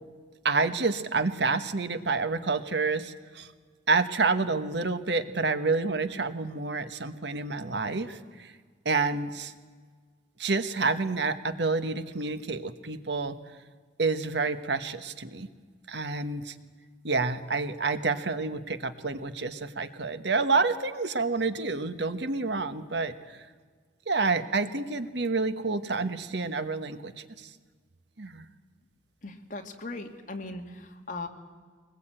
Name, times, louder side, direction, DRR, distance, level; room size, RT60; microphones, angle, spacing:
voice 1, 0.4-3.5 3.9-8.5 8.8-9.5 10.4-13.4 14.0-15.5 15.9-16.5 17.0-23.1 24.1-27.1 27.4-27.5 28.2-28.4, right 4 dB, 70° right, 11 dB, 1.3 m, -28 dB
voice 2, 29.2-31.3, left 2 dB, 45° left, 4 dB, 2.2 m, -38 dB
23.0 x 20.5 x 8.9 m, 1.5 s
head